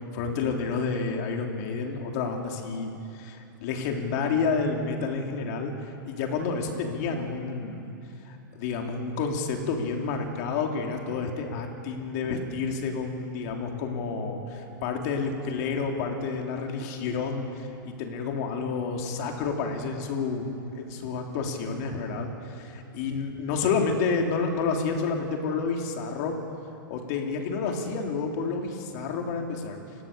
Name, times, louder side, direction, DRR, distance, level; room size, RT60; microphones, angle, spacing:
voice 1, 0.1-7.9 8.3-20.5 20.7-26.4 26.9-29.8, left 4 dB, 50° left, 2 dB, 3.3 m, -30 dB
29.5 x 16.5 x 6.9 m, 2.8 s
hypercardioid pair, 145°, 11 cm